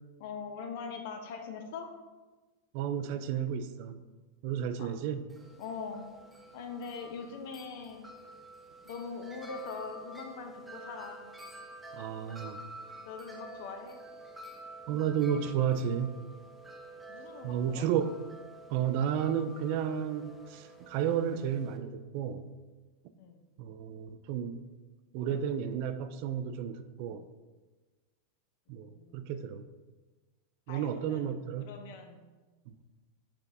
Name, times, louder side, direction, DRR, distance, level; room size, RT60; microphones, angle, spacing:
voice 1, 0.2-1.9 4.8-4.9 5.6-6.1 6.5-8.1 8.8-11.3 12.9-14.0 17.1-17.9 23.2-23.4 28.7-29.3 30.7-32.3, left 5 dB, 65° left, 5 dB, 0.6 m, -42 dB
voice 2, 2.7-4.0 4.4-5.3 11.9-12.7 14.9-16.2 17.4-18.2 18.7-22.5 23.6-24.7 25.1-27.3 28.7-29.6 30.7-31.8 32.7-32.8, right 8 dB, 55° right, 10 dB, 0.3 m, -32 dB
Wind chime, 5.3-21.8, right 1 dB, 5° right, 0.6 m, -49 dB
5.7 x 3.4 x 2.7 m, 1.3 s
hypercardioid pair, 105°, 0 cm